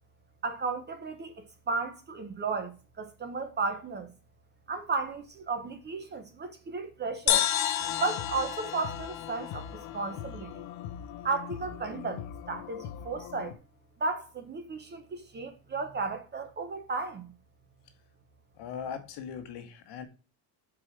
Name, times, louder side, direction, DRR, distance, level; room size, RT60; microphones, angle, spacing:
voice 1, 0.4-4.1 4.7-7.5 8.0-10.6 11.2-13.6 14.0-17.3, right 4 dB, 25° right, 0.7 m, -34 dB
sound 1, 7.3-10.8, left 11 dB, 40° left, 0.7 m, -31 dB
sound 2, 7.8-13.5, left 10 dB, 80° left, 0.8 m, -42 dB
voice 2, 18.6-20.1, left 7 dB, 65° left, 1.4 m, -39 dB
4.8 x 4.6 x 6.0 m
cardioid pair, 165°, 44 cm